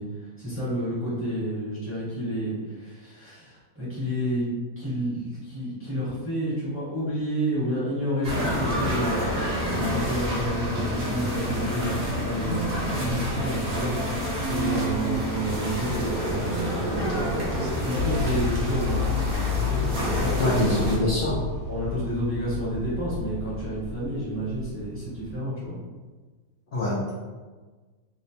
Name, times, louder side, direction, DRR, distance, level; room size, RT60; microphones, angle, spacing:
voice 1, 0.0-4.5 4.8-20.7 21.7-25.8, right 1 dB, 15° right, -10 dB, 0.6 m, -30 dB
sound 1, 8.2-21.0, equal, 85° right, 0.4 m, -28 dB
sound 2, 18.0-25.3, left 7 dB, 70° right, 1.0 m, -31 dB
voice 2, 20.4-21.5 26.7-27.1, left 1 dB, 70° left, -8 dB, 0.5 m, -24 dB
2.8 x 2.0 x 2.8 m, 1.3 s
omnidirectional pair, 1.6 m